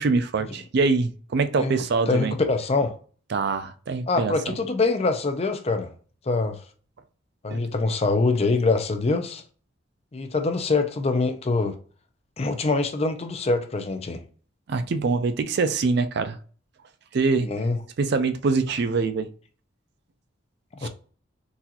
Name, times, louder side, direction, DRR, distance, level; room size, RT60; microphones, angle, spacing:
voice 1, 0.0-2.3 3.3-4.3 7.5-7.7 14.7-16.4 17.1-17.5 18.0-19.3 20.8-20.9, right 4 dB, 60° right, 0.4 m, -24 dB
voice 2, 2.1-2.9 4.1-5.9 6.3-6.6 7.4-9.4 10.1-11.8 12.4-14.2 17.4-17.8 20.8-20.9, left 3 dB, 35° left, 0.5 m, -24 dB
3.9 x 2.4 x 2.8 m
head